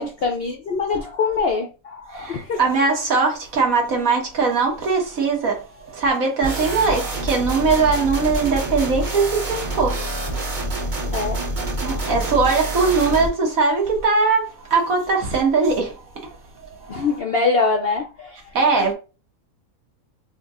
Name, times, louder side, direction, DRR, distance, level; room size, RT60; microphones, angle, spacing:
voice 1, 0.0-2.7 10.9-12.2 16.9-18.5, left 4 dB, 65° left, 0.6 m, -24 dB
voice 2, 2.1-11.0 11.8-17.0 18.5-18.9, right 4 dB, 65° right, 1.7 m, -21 dB
sound 1, 6.4-13.3, right 1 dB, 35° right, 1.0 m, -27 dB
6.2 x 2.7 x 2.4 m
omnidirectional pair, 1.6 m